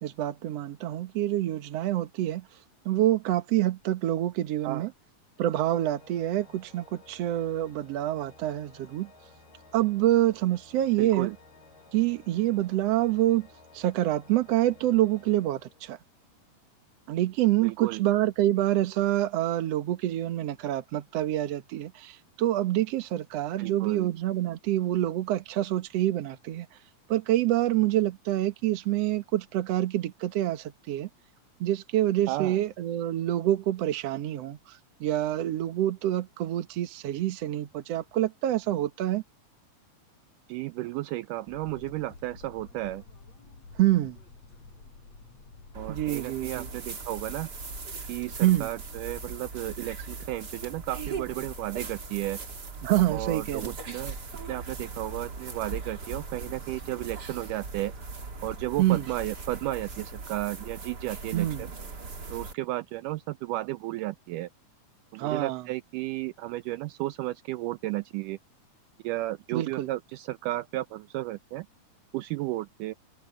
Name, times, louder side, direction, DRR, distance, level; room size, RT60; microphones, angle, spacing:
voice 1, 0.0-2.5 2.9-4.9 5.4-9.1 9.7-11.3 11.9-13.5 13.7-16.0 17.1-26.7 27.1-31.1 31.6-39.2 43.8-44.2 45.9-46.7 48.4-48.7 52.8-53.7 58.8-59.1 61.3-61.6 65.2-65.6 69.5-69.9, right 14 dB, 60° right, 1.9 m, -26 dB
Organ, 5.4-16.2, left 3 dB, 85° left, 9.2 m, -55 dB
voice 2, 11.0-11.4 17.6-18.0 23.6-24.1 32.3-32.6 40.5-43.0 45.8-47.5 48.1-52.4 53.1-54.2 54.5-57.9 58.4-61.7 62.3-64.5 65.1-68.4 69.0-71.7 72.1-72.9, right 17 dB, 80° right, 2.0 m, -33 dB
sound 1, 41.5-60.2, left 3 dB, 50° left, 6.9 m, -51 dB
sound 2, 45.7-62.5, right 4 dB, 30° right, 2.6 m, -40 dB
omnidirectional pair, 3.9 m